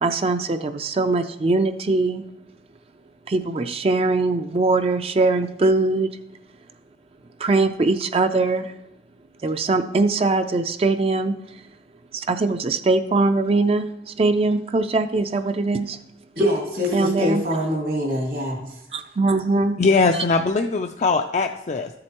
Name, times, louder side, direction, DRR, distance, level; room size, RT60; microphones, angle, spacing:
voice 1, 0.0-2.2 3.3-6.1 7.4-8.8 9.4-11.4 12.1-16.0 16.9-17.4 18.9-19.8, right 3 dB, 35° right, 9 dB, 0.4 m, -21 dB
voice 2, 16.3-18.8, equal, 75° right, -2 dB, 2.3 m, -24 dB
voice 3, 19.8-21.9, left 4 dB, 40° left, 4 dB, 0.3 m, -20 dB
13.5 x 7.6 x 3.0 m, 0.89 s
head